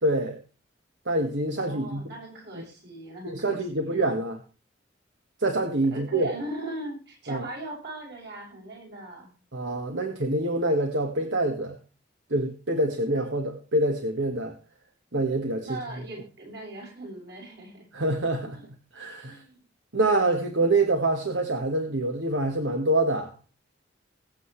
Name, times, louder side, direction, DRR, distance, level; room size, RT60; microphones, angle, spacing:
voice 1, 0.0-0.4 1.0-2.1 2.5-2.6 3.2-4.4 5.4-6.3 7.3-7.4 9.5-11.7 12.3-14.5 15.1-15.8 17.9-18.6 18.9-19.4 19.9-23.3, right 2 dB, 80° right, 4 dB, 1.7 m, -26 dB
voice 2, 1.6-4.2 5.9-9.3 15.6-17.9 18.4-18.7 19.3-19.6, right 1 dB, 60° right, -3 dB, 7.4 m, -39 dB
22.0 x 8.0 x 3.3 m, 0.35 s
head